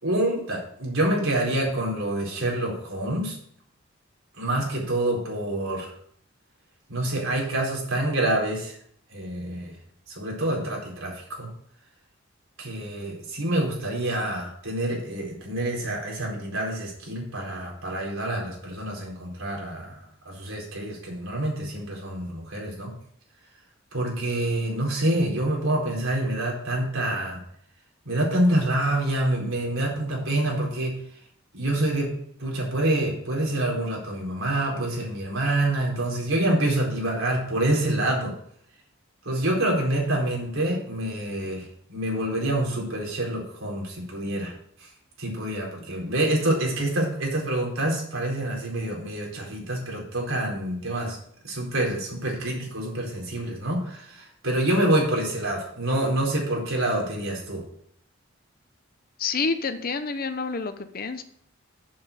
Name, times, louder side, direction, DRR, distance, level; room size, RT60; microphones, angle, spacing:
voice 1, 0.0-3.4 4.4-5.9 6.9-8.8 9.1-9.8 10.1-11.5 12.6-20.0 20.2-22.9 23.9-27.4 28.0-31.0 31.5-32.1 32.4-38.3 39.2-44.5 44.8-44.9 45.2-51.2 51.4-57.6, right 1 dB, 90° right, -2 dB, 4.3 m, -27 dB
voice 2, 59.2-61.2, left 4 dB, 45° left, 10 dB, 0.9 m, -28 dB
7.8 x 7.4 x 6.8 m, 0.65 s
head